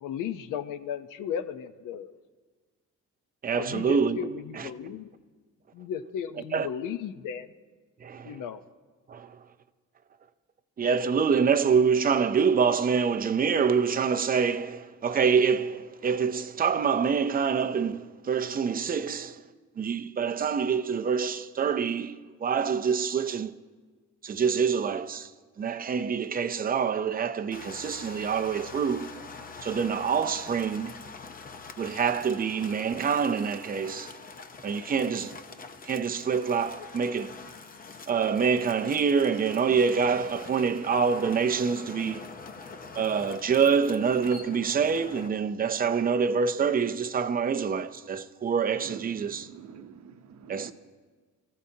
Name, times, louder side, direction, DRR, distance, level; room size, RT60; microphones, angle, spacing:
voice 1, 0.0-2.2 3.5-5.1 5.7-7.5 8.2-8.6, left 8 dB, 90° left, 0.8 m, -35 dB
voice 2, 3.4-4.2 4.5-4.7 6.5-6.7 8.0-8.4 9.1-9.4 10.8-19.4 19.8-23.5 24.2-25.3 25.6-29.1 29.6-31.0 31.8-34.1 34.6-35.3 35.8-37.3 38.1-42.3 42.9-49.5 50.5-50.7, right 6 dB, 30° right, 0.5 m, -26 dB
sound 1, 27.5-45.3, left 4 dB, 30° left, 0.7 m, -44 dB
voice 3, 49.3-50.7, right 8 dB, 60° right, 0.9 m, -45 dB
28.0 x 15.0 x 2.8 m
cardioid pair, 150°, 31 cm